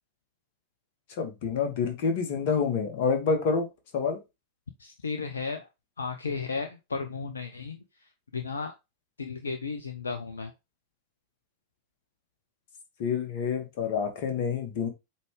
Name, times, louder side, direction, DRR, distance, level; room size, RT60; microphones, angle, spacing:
voice 1, 1.2-3.7 3.9-4.2 13.0-14.9, left 5 dB, 50° left, 1.9 m, -27 dB
voice 2, 4.8-5.7 6.0-7.8 8.3-8.7 9.2-10.5, left 4 dB, 75° left, 0.7 m, -34 dB
8.1 x 3.5 x 3.3 m
figure-of-eight pair, 90°, 0 cm